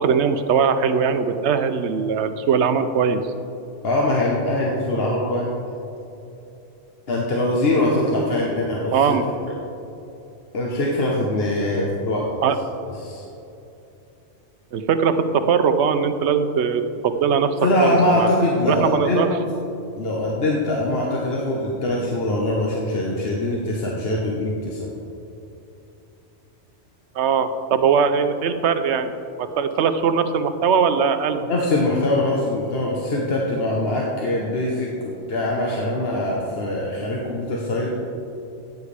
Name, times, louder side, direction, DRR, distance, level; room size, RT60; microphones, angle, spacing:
voice 1, 0.0-3.2 8.9-9.3 12.4-12.6 14.7-17.5 17.8-18.3 18.7-19.4 27.1-29.1 29.4-31.4, right 6 dB, 70° right, 10 dB, 0.9 m, -20 dB
voice 2, 3.8-5.5 7.1-9.2 10.5-12.2 13.0-13.2 17.6-19.3 20.0-24.9 31.4-38.0, left 1 dB, 55° left, -3 dB, 1.3 m, -22 dB
14.5 x 9.4 x 3.4 m, 2.9 s
omnidirectional pair, 1.2 m